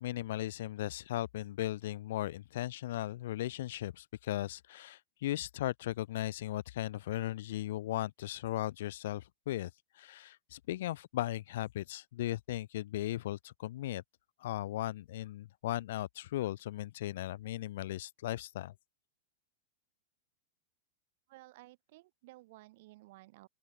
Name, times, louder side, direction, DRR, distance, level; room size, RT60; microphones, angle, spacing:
voice 1, 0.0-9.7 10.0-14.0 14.4-18.7, left 14 dB, 65° left, 0.4 m, -37 dB
voice 2, 21.3-23.5, right 20 dB, 55° right, 2.1 m, -55 dB
open air
supercardioid pair, 150°, 0 cm